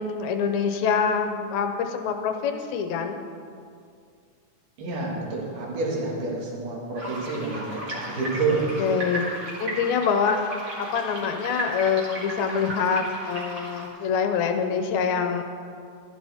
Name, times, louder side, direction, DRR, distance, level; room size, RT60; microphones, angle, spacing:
voice 1, 0.0-3.2 8.5-9.3 9.6-10.4 10.8-15.4, left 6 dB, 75° left, 6 dB, 1.8 m, -25 dB
voice 2, 4.8-7.7 7.9-8.9, right 3 dB, 75° right, -3 dB, 3.6 m, -28 dB
sound 1, 6.9-13.9, right 1 dB, 40° right, 2.8 m, -35 dB
14.0 x 12.5 x 3.5 m, 2.3 s
omnidirectional pair, 3.8 m